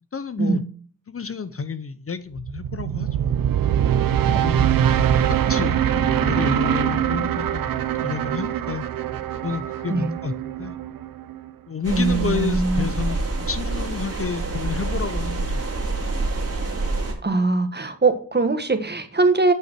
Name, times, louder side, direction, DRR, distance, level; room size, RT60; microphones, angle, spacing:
voice 1, 0.1-0.6 1.1-3.7 4.4-7.7 8.0-8.9 9.4-10.7 11.7-15.6, left 6 dB, 40° left, 13 dB, 0.7 m, -30 dB
sound 1, 2.4-11.5, right 10 dB, 80° right, 0.6 m, -23 dB
sound 2, 11.8-17.1, right 2 dB, 45° right, 2.5 m, -26 dB
voice 2, 11.9-12.9 17.2-19.5, right 3 dB, 30° right, 8 dB, 1.5 m, -21 dB
9.1 x 5.6 x 4.5 m, 0.43 s
cardioid pair, 55°, 34 cm